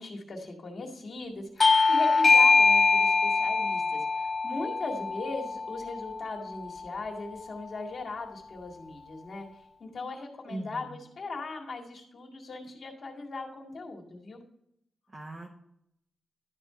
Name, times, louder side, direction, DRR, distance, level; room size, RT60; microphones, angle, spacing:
voice 1, 0.0-9.5 9.8-14.4, left 3 dB, 45° left, 0 dB, 1.9 m, -39 dB
Bell / Doorbell, 1.6-6.7, left 4 dB, 25° left, 0.3 m, -23 dB
voice 2, 10.5-11.0 15.1-15.5, right 1 dB, 25° right, 0 dB, 0.9 m, -39 dB
12.0 x 4.4 x 5.5 m, 0.78 s
wide cardioid pair, 170°, 0 cm